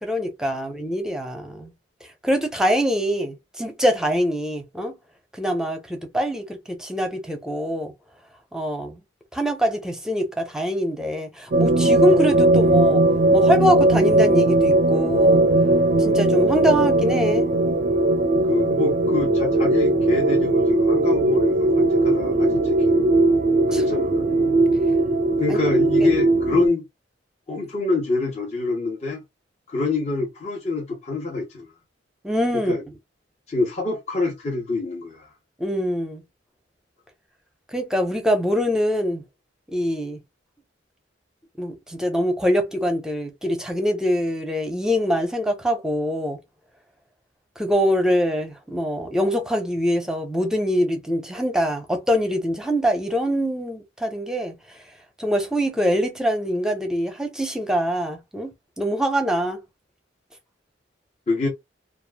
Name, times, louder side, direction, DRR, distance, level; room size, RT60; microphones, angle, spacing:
voice 1, 0.0-1.7 2.2-5.0 5.4-7.9 8.5-9.0 9.3-13.0 13.3-15.4 16.0-17.4 23.7-23.8 25.5-25.6 26.0-26.2 26.5-26.7 32.2-32.7 35.6-36.2 37.7-39.2 39.7-40.2 41.6-46.4 47.6-54.5 55.2-59.6, equal, 5° right, 0.7 m, -24 dB
sound 1, 11.5-26.7, right 2 dB, 45° right, 0.4 m, -19 dB
voice 2, 18.4-23.2 23.7-24.2 25.4-26.8 27.5-29.2 29.7-31.7 32.5-32.8 33.5-35.3 61.3-61.5, left 3 dB, 40° left, 1.0 m, -26 dB
3.0 x 2.4 x 2.2 m
head